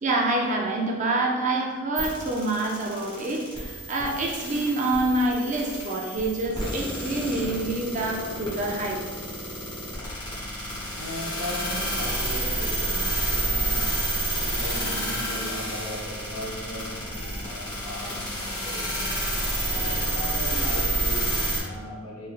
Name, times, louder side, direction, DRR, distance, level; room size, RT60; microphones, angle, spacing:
voice 1, 0.0-9.0, right 2 dB, 35° right, 0 dB, 0.4 m, -26 dB
sound 1, 2.0-21.6, right 1 dB, 20° left, 1.0 m, -29 dB
voice 2, 10.9-14.0 14.3-19.2 19.6-22.3, equal, 70° left, -3 dB, 0.8 m, -37 dB
3.4 x 3.2 x 2.4 m, 1.4 s
head